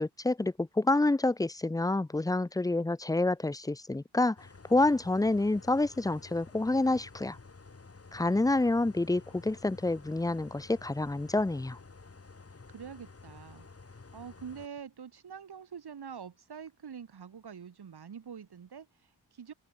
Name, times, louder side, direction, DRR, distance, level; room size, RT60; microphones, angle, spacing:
voice 1, 0.0-4.4 4.7-7.4 8.1-11.8, left 2 dB, 10° left, 0.5 m, -28 dB
sound 1, 4.4-14.7, left 4 dB, 40° left, 2.9 m, -52 dB
voice 2, 12.7-19.5, right 7 dB, 85° right, 4.6 m, -46 dB
wide cardioid pair, 75°, 38 cm